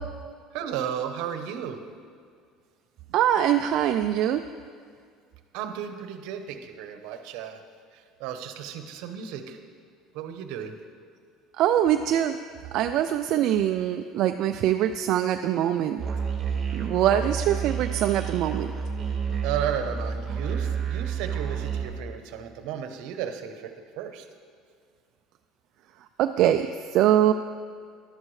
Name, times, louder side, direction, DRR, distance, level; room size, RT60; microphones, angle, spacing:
voice 1, 0.5-1.8 5.5-7.6 7.9-9.6 10.1-10.7 19.4-24.3, right 8 dB, 70° right, 7 dB, 0.9 m, -34 dB
voice 2, 3.1-4.4 11.5-12.4 12.7-16.0 16.7-18.7 26.2-27.3, right 11 dB, 50° right, 7 dB, 0.3 m, -23 dB
Musical instrument, 16.0-21.9, right 7 dB, 30° right, 1.4 m, -30 dB
14.0 x 11.5 x 3.2 m, 2.1 s
cardioid pair, 160°, 0 cm